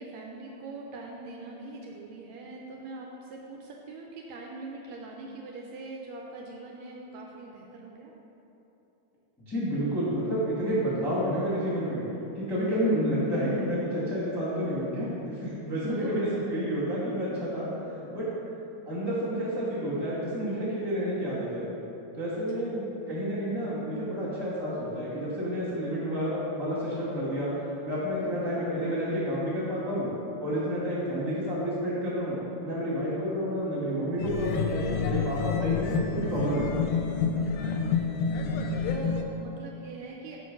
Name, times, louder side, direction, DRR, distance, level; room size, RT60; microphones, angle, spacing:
voice 1, 0.0-8.1 15.9-16.4 22.5-22.7 28.2-28.4 37.4-37.8 38.9-40.4, right 3 dB, 80° right, -1 dB, 1.7 m, -42 dB
voice 2, 9.5-12.0 12.3-17.7 18.0-18.3 18.9-21.7 22.1-27.5 27.8-30.1 30.4-32.4 32.6-36.8, equal, 15° left, -10 dB, 0.8 m, -30 dB
sound 1, 34.2-39.2, left 5 dB, 80° left, 1.7 m, -28 dB
6.5 x 5.4 x 5.2 m, 3.0 s
omnidirectional pair, 3.5 m